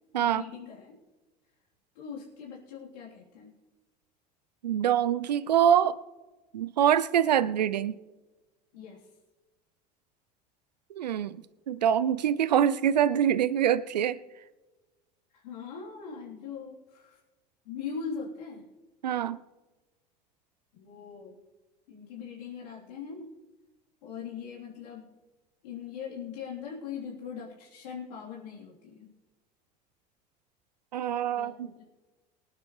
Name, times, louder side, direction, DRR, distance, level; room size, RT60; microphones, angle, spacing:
voice 1, 0.2-1.0 1.9-3.5 8.7-9.1 15.3-17.2 17.6-18.6 20.7-21.4 21.9-23.3 24.0-25.0 25.6-29.1 31.3-31.8, left 6 dB, 75° left, -6 dB, 3.7 m, -41 dB
voice 2, 4.6-6.0 6.5-8.0 11.0-11.4 11.7-14.2 19.0-19.4 30.9-31.7, right 9 dB, 90° right, 16 dB, 0.5 m, -25 dB
24.0 x 9.3 x 3.3 m, 1.2 s
hypercardioid pair, 70°, 21 cm